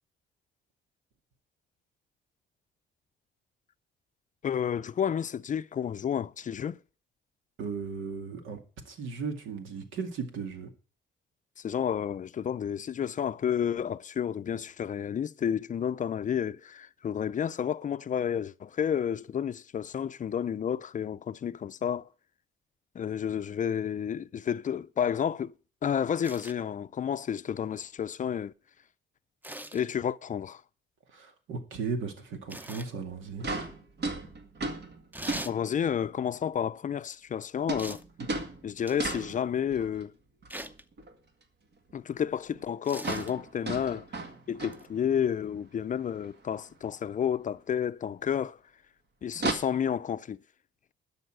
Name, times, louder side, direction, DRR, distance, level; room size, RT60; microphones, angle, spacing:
voice 1, 4.4-6.8 11.6-22.1 22.9-25.5 25.8-28.5 29.7-30.6 35.4-38.0 38.6-40.1 41.9-44.1 44.5-48.6 49.2-50.4, left 8 dB, 40° left, 0.5 m, -31 dB
voice 2, 7.6-8.6 8.9-10.7 31.1-33.5, right 5 dB, 85° right, 2.2 m, -36 dB
sound 1, 26.2-26.6 29.4-29.9 32.5-32.9 35.1-35.6 37.8-38.1 38.9-39.3 40.5-40.8 42.8-43.3 44.7-44.9, right 1 dB, 10° right, 0.7 m, -41 dB
sound 2, 33.1-33.2 33.4-36.1 37.7-40.0 40.4-41.1 41.4-41.5 41.9-42.0 42.3-42.4 42.5-42.7 42.9-45.4 45.7-45.8 46.2-46.3 47.4-47.5 49.3-49.5, right 3 dB, 55° right, 2.0 m, -36 dB
12.5 x 5.6 x 8.9 m
cardioid pair, 90°, 20 cm